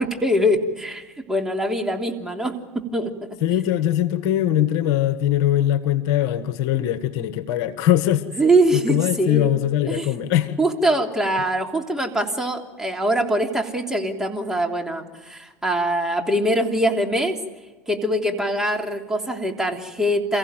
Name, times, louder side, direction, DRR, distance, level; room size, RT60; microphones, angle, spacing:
voice 1, 0.0-3.3 8.4-9.5 9.8-10.1 10.6-17.4 17.9-20.4, right 1 dB, 5° right, 2 dB, 3.3 m, -23 dB
voice 2, 3.4-8.3 8.7-10.6, left 11 dB, 60° left, 11 dB, 1.4 m, -21 dB
29.0 x 15.5 x 9.1 m, 1.3 s
hypercardioid pair, 85°, 7 cm